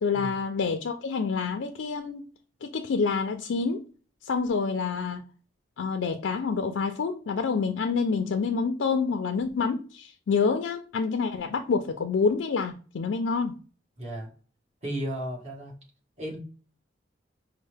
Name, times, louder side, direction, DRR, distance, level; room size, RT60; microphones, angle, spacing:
voice 1, 0.0-2.2 2.6-3.8 4.2-5.2 5.8-13.6, left 5 dB, 80° left, 0.4 m, -27 dB
voice 2, 14.0-14.3 14.8-15.7 16.2-16.4, equal, 35° right, 1.6 m, -34 dB
5.3 x 2.1 x 3.3 m
head